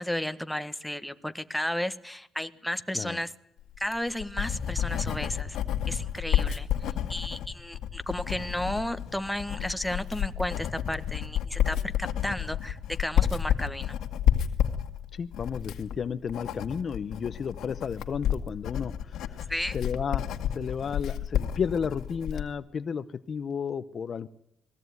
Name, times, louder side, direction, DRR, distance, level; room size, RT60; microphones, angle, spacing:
voice 1, 0.0-3.3 3.8-5.6 5.9-13.9 19.5-19.8, left 1 dB, 5° left, 9 dB, 1.5 m, -33 dB
Writing, 3.7-22.5, left 10 dB, 80° left, 1.9 m, -30 dB
voice 2, 15.1-19.5 19.7-20.3 20.5-24.3, left 6 dB, 50° left, 13 dB, 0.8 m, -33 dB
21.0 x 16.0 x 9.5 m, 0.79 s
cardioid pair, 90°, 0 cm